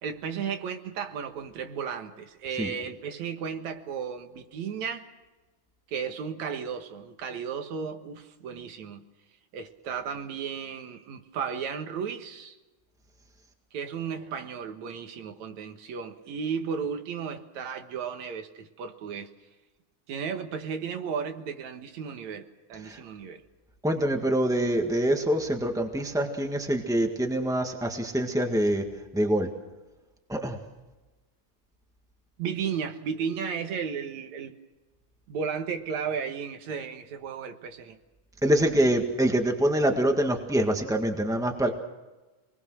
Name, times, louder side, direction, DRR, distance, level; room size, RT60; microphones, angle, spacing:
voice 1, 0.0-5.1 5.9-9.0 9.5-12.6 13.7-19.3 20.1-23.4 32.4-34.6 35.3-38.0, right 6 dB, 65° right, 2.7 m, -34 dB
voice 2, 23.8-28.8 29.1-29.5 30.3-30.6 38.4-41.7, right 1 dB, 5° right, 0.3 m, -25 dB
28.0 x 20.5 x 6.3 m
omnidirectional pair, 3.7 m